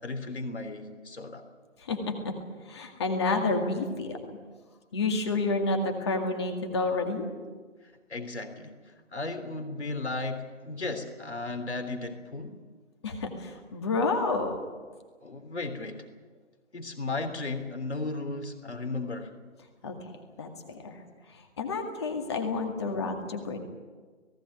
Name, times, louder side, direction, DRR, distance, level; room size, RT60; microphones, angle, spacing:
voice 1, 0.0-1.4 3.3-3.5 7.8-12.6 15.2-16.1 16.7-19.3, left 3 dB, 65° left, 7 dB, 3.3 m, -35 dB
voice 2, 1.8-2.3 2.7-4.4 4.9-7.3 13.0-14.6 19.8-20.1 20.4-21.0 21.3-23.6, left 3 dB, 20° left, 4 dB, 2.1 m, -30 dB
19.0 x 16.5 x 9.4 m, 1.5 s
figure-of-eight pair, 160°, 36 cm